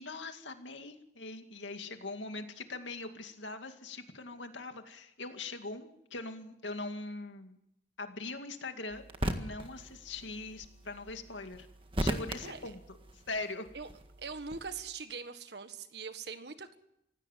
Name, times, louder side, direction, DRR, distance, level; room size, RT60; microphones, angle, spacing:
voice 1, 0.0-7.6 8.0-11.7 12.0-12.8 13.1-13.7, left 3 dB, 80° left, 6 dB, 2.3 m, -42 dB
sound 1, 8.9-14.9, right 1 dB, 30° right, 1.7 m, -39 dB
voice 2, 12.4-12.7 13.7-13.9 14.2-16.8, right 5 dB, 60° right, 10 dB, 1.6 m, -42 dB
25.0 x 16.5 x 7.5 m, 0.82 s
head